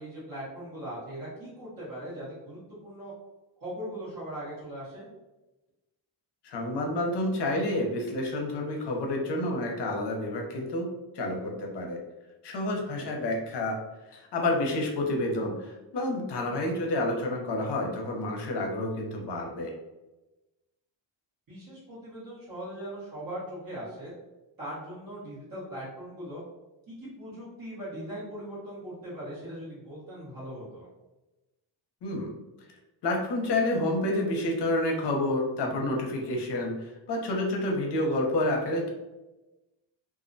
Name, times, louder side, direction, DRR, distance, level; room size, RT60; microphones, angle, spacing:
voice 1, 0.0-3.1 3.6-5.1 12.9-13.1 16.7-16.9 21.5-24.1 24.6-26.4 26.9-30.9, right 1 dB, 45° right, -8 dB, 1.0 m, -40 dB
voice 2, 6.4-10.9 11.1-12.0 12.4-13.8 14.1-19.7 32.0-32.3 33.0-38.9, left 1 dB, 60° left, 1 dB, 0.6 m, -29 dB
2.4 x 2.1 x 2.5 m, 1.1 s
wide cardioid pair, 145°, 46 cm